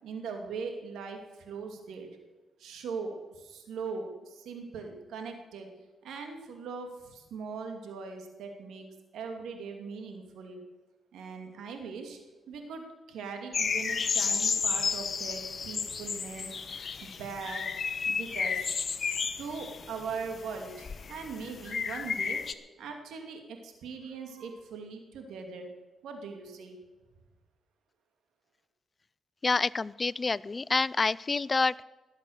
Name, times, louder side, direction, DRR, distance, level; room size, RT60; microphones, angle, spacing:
voice 1, 0.0-2.1 2.6-5.7 6.0-8.9 9.1-10.6 11.1-12.2 12.5-16.5 17.0-17.7 18.0-18.8 19.4-22.4 22.8-25.7 26.0-26.8, right 5 dB, 85° right, 4 dB, 2.6 m, -40 dB
sound 1, 13.5-22.5, left 6 dB, 55° left, 1.0 m, -32 dB
voice 2, 29.4-31.8, left 4 dB, 35° left, 21 dB, 0.4 m, -28 dB
20.0 x 8.3 x 6.5 m, 1.2 s
cardioid pair, 70°, 0 cm